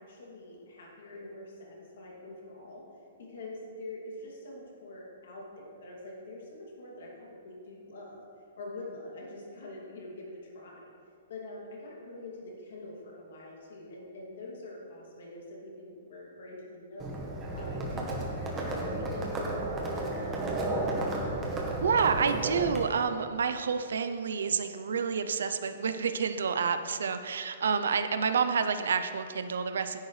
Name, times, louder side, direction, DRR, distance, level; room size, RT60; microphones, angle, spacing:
voice 1, 0.0-2.8 3.2-8.2 8.6-10.9 11.3-17.1 17.5-20.8, left 2 dB, 65° left, -3 dB, 2.5 m, -44 dB
Livestock farm animals working animals, 17.0-22.8, right 2 dB, 15° right, 1.1 m, -33 dB
voice 2, 21.8-30.0, right 6 dB, 90° right, 9 dB, 0.6 m, -29 dB
10.5 x 9.1 x 3.3 m, 2.4 s
hypercardioid pair, 175°, 0 cm